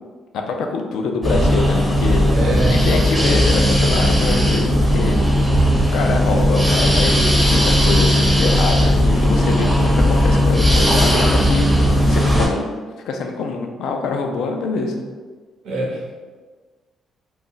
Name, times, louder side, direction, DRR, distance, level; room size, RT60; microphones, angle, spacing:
voice 1, 0.3-2.2 2.7-5.2 5.9-11.6 12.1-12.7 13.0-15.0, left 4 dB, 80° left, 3 dB, 0.3 m, -25 dB
sound 1, 1.2-12.5, equal, ahead, 0.7 m, -16 dB
voice 2, 2.3-2.8 3.1-3.4 15.6-16.1, right 1 dB, 80° right, -3 dB, 0.8 m, -24 dB
2.4 x 2.1 x 3.8 m, 1.4 s
cardioid pair, 90°, 0 cm